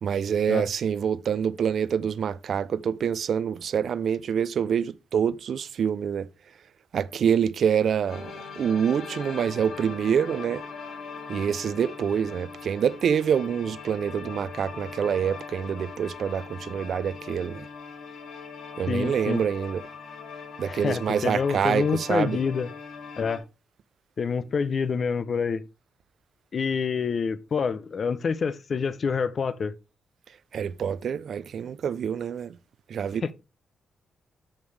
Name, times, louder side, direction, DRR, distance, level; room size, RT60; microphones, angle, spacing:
voice 1, 0.0-6.3 6.9-8.2 8.6-10.6 11.3-17.7 18.8-19.8 20.6-22.4 30.5-32.6 32.9-33.3, right 7 dB, 55° right, 0.4 m, -26 dB
sound 1, 8.1-23.4, left 5 dB, 75° left, 4.3 m, -40 dB
voice 2, 18.9-19.4 20.7-22.7 23.2-23.4 24.2-25.6 26.5-29.7 33.2-33.3, left 5 dB, 40° left, 0.5 m, -27 dB
13.0 x 5.4 x 3.3 m
wide cardioid pair, 160°, 0 cm